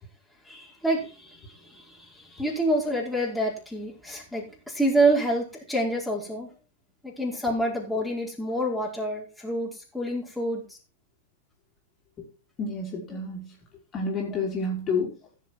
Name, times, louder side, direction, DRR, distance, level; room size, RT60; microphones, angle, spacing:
voice 1, 0.4-6.5 7.0-10.6 13.1-13.2 14.3-14.4, right 1 dB, ahead, -4 dB, 4.8 m, -27 dB
voice 2, 12.6-13.5 13.9-15.1, left 3 dB, 30° left, -2 dB, 3.7 m, -29 dB
16.0 x 6.8 x 4.6 m, 0.34 s
figure-of-eight pair, 100°, 0 cm